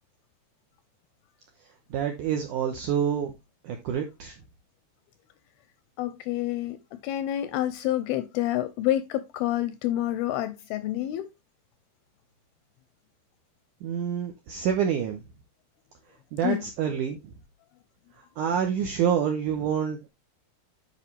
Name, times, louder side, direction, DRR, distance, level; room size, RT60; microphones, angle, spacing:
voice 1, 1.9-3.3 3.6-4.4 13.8-15.2 16.3-17.3 18.4-20.1, right 8 dB, 80° right, 1.9 m, -27 dB
voice 2, 6.0-11.3 16.4-16.7, left 13 dB, 85° left, 2.3 m, -28 dB
9.5 x 5.2 x 3.3 m
omnidirectional pair, 4.8 m